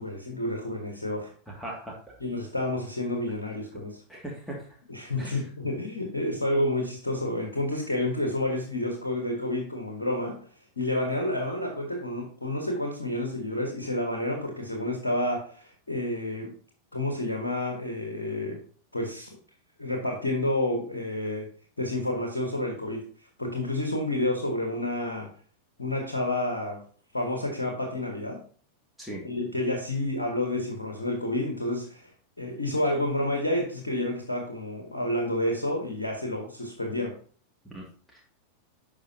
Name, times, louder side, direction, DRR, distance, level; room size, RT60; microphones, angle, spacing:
voice 1, 0.0-1.3 2.2-3.9 4.9-10.4 10.8-16.5 16.9-18.6 18.9-19.4 19.8-21.5 21.8-23.0 23.4-25.3 25.8-26.8 27.1-28.4 29.2-32.1 32.4-37.1, left 1 dB, 75° left, 2 dB, 1.5 m, -29 dB
voice 2, 1.5-2.1 4.1-4.7 5.2-5.4 29.0-29.2 37.7-38.3, right 1 dB, ahead, -3 dB, 2.1 m, -40 dB
10.5 x 5.5 x 2.8 m, 0.44 s
figure-of-eight pair, 90°, 0 cm